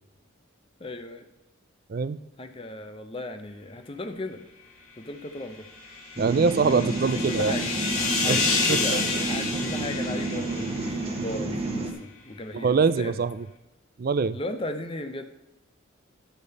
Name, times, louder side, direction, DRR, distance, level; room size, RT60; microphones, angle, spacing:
voice 1, 0.8-1.3 2.4-4.4 5.0-5.7 7.0-7.7 8.2-13.2 14.3-15.2, left 2 dB, 25° left, 8 dB, 0.6 m, -36 dB
sound 1, 5.6-11.2, left 4 dB, 85° left, 1.6 m, -29 dB
sound 2, 6.2-11.9, right 2 dB, 30° right, 1.1 m, -30 dB
voice 2, 6.2-7.5 8.2-8.4 8.7-8.8 12.5-13.4 14.0-14.4, right 4 dB, 45° right, 15 dB, 0.3 m, -23 dB
11.5 x 5.1 x 5.3 m, 0.98 s
head